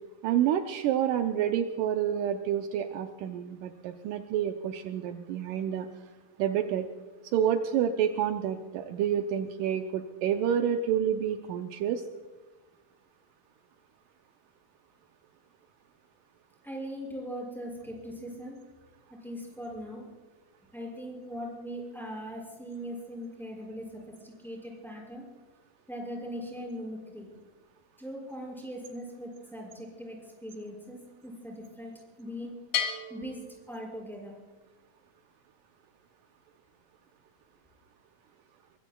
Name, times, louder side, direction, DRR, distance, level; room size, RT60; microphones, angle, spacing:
voice 1, 0.2-5.9 6.4-6.9 7.3-12.0, right 9 dB, 80° right, 5 dB, 2.2 m, -28 dB
voice 2, 16.6-18.6 19.2-20.1 20.7-25.3 25.9-27.3 28.0-31.9 32.2-32.6 33.1-33.4 33.7-34.4, equal, ahead, -3 dB, 5.6 m, -40 dB
Bell, 32.7-34.5, left 8 dB, 75° left, 3.5 m, -35 dB
23.0 x 22.5 x 2.3 m, 1.3 s
omnidirectional pair, 3.9 m